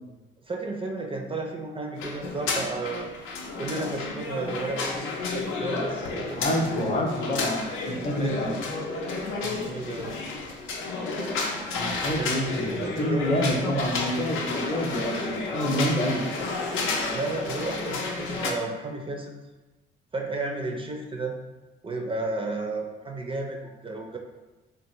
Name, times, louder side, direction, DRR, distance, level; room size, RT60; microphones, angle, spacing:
voice 1, 0.5-3.1 3.6-6.5 8.2-8.5 9.4-10.3 12.2-12.3 12.8-13.3 17.1-19.4 20.1-21.4 21.8-24.2, right 2 dB, 25° right, 1 dB, 0.4 m, -33 dB
sound 1, 2.0-18.5, left 3 dB, 90° left, 0.5 m, -31 dB
voice 2, 6.3-8.5 11.7-16.2, equal, 30° left, 1 dB, 0.6 m, -28 dB
3.3 x 2.4 x 2.9 m, 1.2 s
cardioid pair, 90°, 20 cm